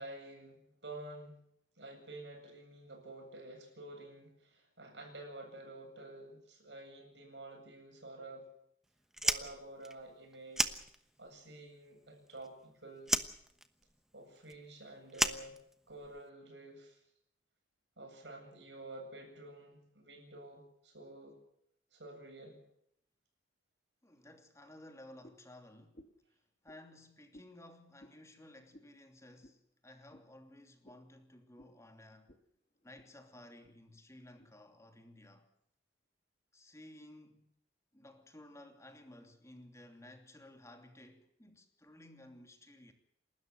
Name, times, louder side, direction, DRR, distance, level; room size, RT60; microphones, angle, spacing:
voice 1, 0.0-1.4 1.8-8.5 9.2-10.8 11.2-13.2 14.1-15.6 15.9-17.0 18.0-21.4 21.9-22.6, right 2 dB, 80° right, 7.8 m, -50 dB
Fire, 9.1-11.4 11.7-12.7 13.0-16.2, right 1 dB, 5° right, 1.1 m, -35 dB
voice 2, 24.0-26.0 26.3-26.4 26.6-32.3 32.8-35.5 36.5-37.5 37.9-42.9, left 1 dB, 15° left, 2.8 m, -56 dB
sound 1, 25.2-25.5 25.9-26.3 26.6-26.8 27.3-27.5 28.0-28.2 28.7-28.9 29.4-29.6 30.1-30.3 30.8-31.1 31.6-31.8 32.3-32.4 32.8-33.1 33.6-33.8 34.4-34.5, equal, 40° left, 1.8 m, -58 dB
29.5 x 13.0 x 7.9 m
head